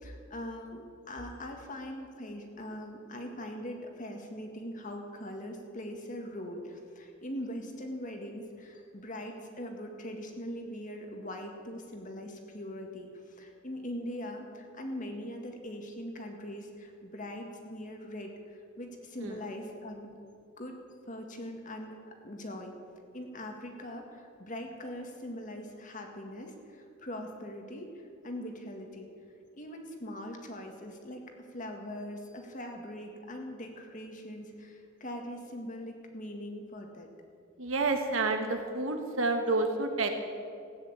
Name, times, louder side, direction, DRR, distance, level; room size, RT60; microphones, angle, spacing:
voice 1, 0.0-20.1 20.6-22.7 23.1-29.1 29.6-31.2 31.5-37.1, left 1 dB, 40° left, 3 dB, 1.9 m, -41 dB
voice 2, 37.6-40.1, right 3 dB, 80° right, 5 dB, 1.7 m, -29 dB
15.5 x 9.8 x 8.2 m, 2.4 s
head